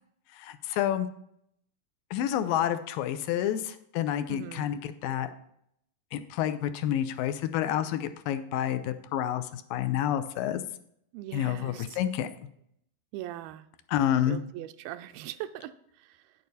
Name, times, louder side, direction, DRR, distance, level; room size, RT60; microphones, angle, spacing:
voice 1, 0.3-1.1 2.1-5.3 6.1-10.6 11.3-12.3 13.9-14.4, left 11 dB, 80° left, 10 dB, 2.2 m, -29 dB
voice 2, 4.3-4.7 11.1-12.0 13.1-13.7 14.3-16.3, right 13 dB, 90° right, 11 dB, 2.4 m, -41 dB
9.3 x 8.5 x 4.1 m, 0.72 s
omnidirectional pair, 4.1 m